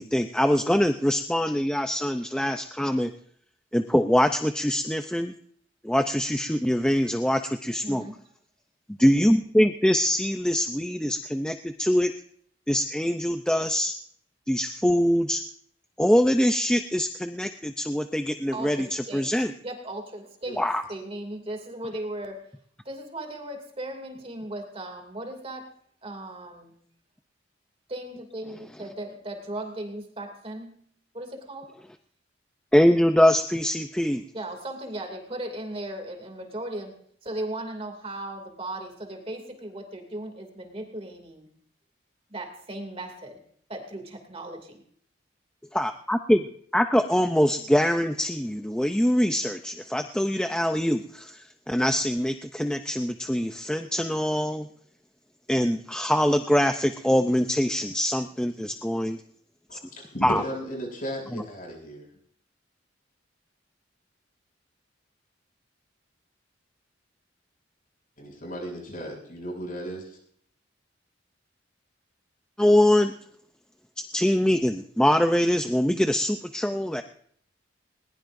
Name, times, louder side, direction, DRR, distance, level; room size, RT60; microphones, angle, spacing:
voice 1, 0.0-3.1 3.7-5.3 5.8-8.1 9.0-12.1 12.7-13.9 14.5-15.4 16.0-19.5 20.6-20.8 32.7-34.2 45.7-46.4 46.7-54.7 55.5-59.2 59.7-59.8 60.2-60.4 61.3-61.4 72.6-73.1 74.0-77.0, equal, 5° left, 6 dB, 0.5 m, -23 dB
voice 2, 7.8-8.3 18.5-19.4 19.6-22.5 22.8-26.8 27.9-30.8 31.1-31.8 34.3-41.5 42.3-43.4 43.7-44.8, right 1 dB, 30° right, 4 dB, 2.6 m, -37 dB
voice 3, 59.7-62.1 68.2-70.2, equal, 50° left, 0 dB, 7.2 m, -35 dB
21.0 x 20.0 x 2.6 m, 0.63 s
head